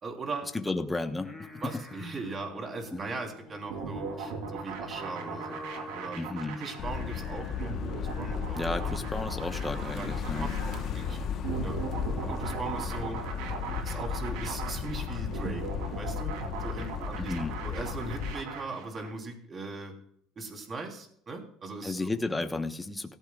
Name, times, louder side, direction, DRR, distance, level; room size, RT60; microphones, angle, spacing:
voice 1, 0.0-0.6 1.6-5.7 5.9-6.2 6.6-9.1 9.9-11.8 12.2-13.2 13.8-15.7 16.0-16.3 16.6-20.0 20.3-22.1, right 3 dB, 30° right, 3 dB, 3.4 m, -39 dB
voice 2, 0.5-1.3 6.1-6.6 8.6-10.5 17.2-17.5 21.8-23.2, left 2 dB, 10° left, 7 dB, 1.1 m, -33 dB
Singing, 1.1-13.3, left 3 dB, 5° right, 4.6 m, -47 dB
sound 1, 3.7-19.1, right 6 dB, 85° right, 3.0 m, -39 dB
sound 2, 6.8-18.3, left 7 dB, 55° left, 1.1 m, -35 dB
17.0 x 14.0 x 2.4 m, 0.66 s
cardioid pair, 115°, 0 cm